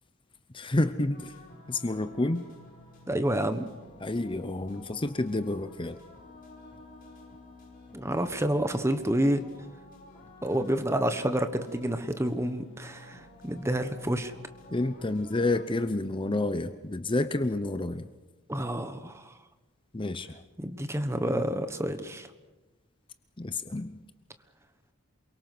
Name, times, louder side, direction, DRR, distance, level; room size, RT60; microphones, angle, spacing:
voice 1, 0.5-1.3 1.7-2.5 4.0-6.0 14.7-18.1 19.9-20.4 23.4-24.0, left 2 dB, 25° left, 10 dB, 0.7 m, -29 dB
sound 1, 1.1-15.6, left 2 dB, 40° left, 4.9 m, -51 dB
voice 2, 3.1-3.7 7.9-9.4 10.4-14.3 18.5-19.4 20.6-22.3, right 1 dB, 15° right, 9 dB, 1.2 m, -29 dB
28.0 x 23.0 x 6.1 m, 1.2 s
head